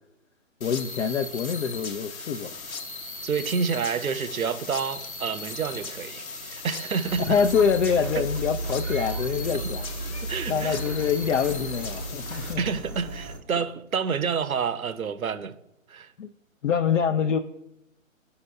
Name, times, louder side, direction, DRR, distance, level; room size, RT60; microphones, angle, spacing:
sound 1, 0.6-12.5, left 3 dB, 85° left, 1.1 m, -38 dB
voice 1, 0.6-2.6 7.3-9.9 10.5-12.6 16.2-16.3 16.6-17.4, left 7 dB, 65° left, 0.5 m, -25 dB
voice 2, 3.2-7.3 8.2-8.3 10.2-10.8 12.6-15.6 15.9-16.1, right 6 dB, 90° right, 0.6 m, -29 dB
Liquid, 3.6-12.9, left 5 dB, 25° left, 0.9 m, -52 dB
sound 2, 7.0-13.4, right 2 dB, 15° right, 0.5 m, -34 dB
13.0 x 5.5 x 2.2 m
figure-of-eight pair, 140°, 41 cm